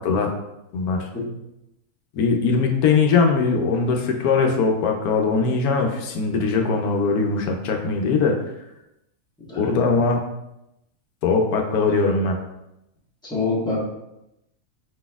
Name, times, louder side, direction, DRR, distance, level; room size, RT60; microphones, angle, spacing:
voice 1, 0.7-1.1 2.1-8.4 9.6-10.2 11.2-12.4, left 4 dB, 80° left, 2 dB, 1.1 m, -21 dB
voice 2, 9.5-9.9 13.2-13.8, left 3 dB, 5° left, -6 dB, 1.0 m, -26 dB
4.8 x 4.1 x 2.3 m, 0.88 s
omnidirectional pair, 1.6 m